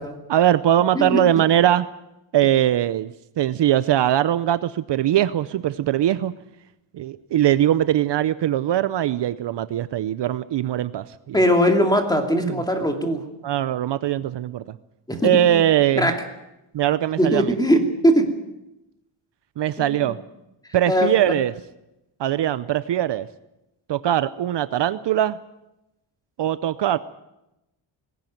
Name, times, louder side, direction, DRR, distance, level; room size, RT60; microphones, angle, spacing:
voice 1, 0.3-1.9 2.3-3.1 3.4-6.3 6.9-11.4 12.4-12.6 13.4-14.8 15.2-16.1 16.7-17.5 19.6-20.2 20.7-21.5 22.2-23.3 23.9-25.4 26.4-27.0, right 11 dB, 60° right, 15 dB, 0.7 m, -21 dB
voice 2, 11.3-13.2 15.1-15.6 16.0-16.2 17.2-18.3 19.8-20.0 20.9-21.1, equal, 10° left, 4 dB, 2.5 m, -20 dB
20.0 x 16.5 x 9.2 m, 0.91 s
wide cardioid pair, 170°, 47 cm